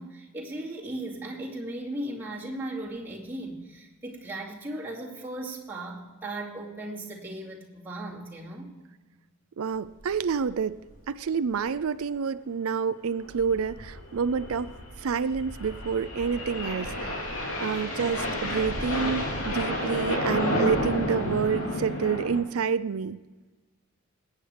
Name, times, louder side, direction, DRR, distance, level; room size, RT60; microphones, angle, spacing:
voice 1, 0.0-8.7, right 1 dB, 10° right, -6 dB, 2.5 m, -37 dB
voice 2, 9.6-10.8 11.1-14.7 15.0-17.3 17.6-23.2, right 6 dB, 90° right, 13 dB, 0.5 m, -28 dB
sound 1, 10.0-10.2 10.5-10.6 10.9-11.0 11.5-11.8 13.1-22.4, left 1 dB, 80° left, 3.1 m, -31 dB
20.0 x 9.2 x 3.4 m, 1.2 s
head